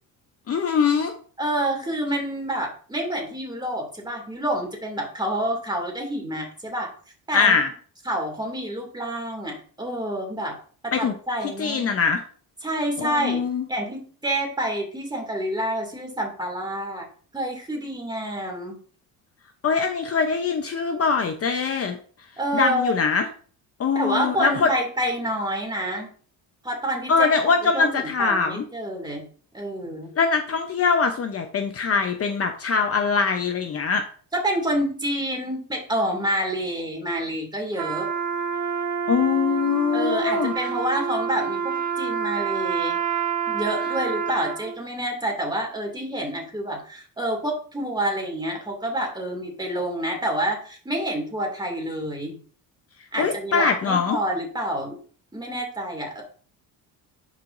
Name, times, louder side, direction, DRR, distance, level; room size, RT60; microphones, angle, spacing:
voice 1, 0.5-1.1 7.3-7.7 10.9-11.1 11.4-12.2 13.0-13.7 19.6-22.0 22.5-23.3 23.8-24.7 27.1-28.6 30.1-34.0 39.1-40.5 53.2-54.2, left 5 dB, 40° left, 5 dB, 0.8 m, -22 dB
voice 2, 1.4-6.9 7.3-7.6 8.1-10.6 11.0-12.0 12.6-13.4 13.7-17.1 17.3-18.8 22.4-23.0 23.9-26.1 26.6-27.3 27.7-29.2 29.5-30.1 34.3-38.1 39.9-43.0 43.5-52.4 53.1-55.0 55.3-56.2, right 1 dB, 10° right, 2 dB, 2.4 m, -28 dB
Trumpet, 37.7-44.7, right 6 dB, 45° right, 1.5 m, -27 dB
11.0 x 4.8 x 2.6 m, 0.43 s
cardioid pair, 120°, 38 cm